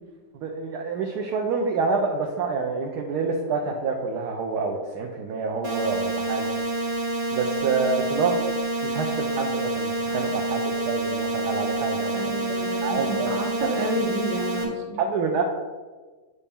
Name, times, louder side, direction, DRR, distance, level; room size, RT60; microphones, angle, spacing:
voice 1, 0.3-6.5 7.3-8.4 8.8-12.2 12.8-13.7 15.0-15.4, right 4 dB, 70° right, 1 dB, 1.2 m, -27 dB
sound 1, 5.6-14.6, right 2 dB, 35° right, 1.3 m, -28 dB
voice 2, 12.1-15.0, right 1 dB, 55° right, 1 dB, 1.5 m, -31 dB
8.4 x 4.2 x 3.6 m, 1.3 s
omnidirectional pair, 1.9 m